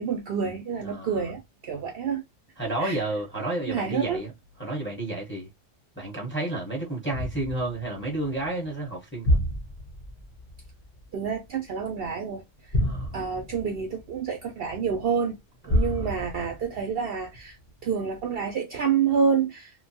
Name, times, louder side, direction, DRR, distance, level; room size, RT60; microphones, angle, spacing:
voice 1, 0.0-2.2 2.8-3.0 3.6-4.2 11.1-12.4 13.1-15.4 15.6-17.6 17.8-19.7, right 6 dB, 65° right, 0.6 m, -28 dB
voice 2, 0.8-1.2 2.6-4.3 4.6-5.5 6.0-9.4 12.8-13.1 15.7-16.1, right 2 dB, 10° left, 0.8 m, -31 dB
sound 1, 7.1-12.1 12.6-15.0 15.6-17.7 18.2-18.3, left 1 dB, 40° left, 0.6 m, -30 dB
2.6 x 2.2 x 2.6 m
omnidirectional pair, 1.3 m